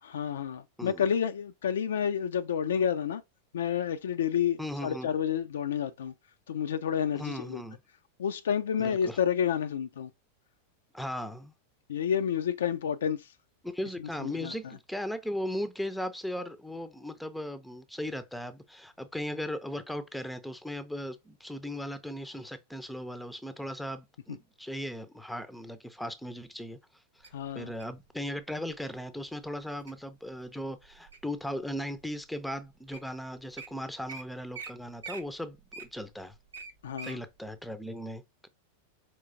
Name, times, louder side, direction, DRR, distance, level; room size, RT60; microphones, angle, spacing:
voice 1, 0.0-3.2 3.5-6.1 6.5-7.6 8.2-10.1 11.9-13.3 14.2-14.5 27.3-27.7 36.8-37.2, left 8 dB, 65° left, 0.3 m, -30 dB
voice 2, 4.6-5.1 7.1-7.8 8.8-9.2 10.9-11.5 13.6-26.8 27.2-27.3 27.5-36.3 37.0-38.5, equal, ahead, 0.5 m, -37 dB
Wild animals, 27.2-28.0 28.7-29.0 29.5-29.9 30.4-31.4 32.0-32.1 32.7-32.8 32.9-33.1 33.4-33.7 34.1-34.2 34.5-34.7 35.0-37.2 37.6-37.7, right 5 dB, 75° right, 0.7 m, -43 dB
4.6 x 3.0 x 2.5 m
figure-of-eight pair, 90°, 0 cm